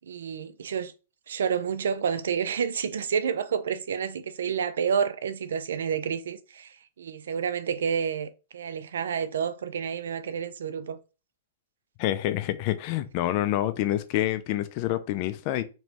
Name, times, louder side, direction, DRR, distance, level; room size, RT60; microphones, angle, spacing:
voice 1, 0.0-0.9 1.3-11.0, right 7 dB, 80° right, 0.4 m, -29 dB
voice 2, 12.0-15.6, left 14 dB, 45° left, 0.5 m, -27 dB
3.1 x 3.0 x 2.9 m
hypercardioid pair, 125°, 0 cm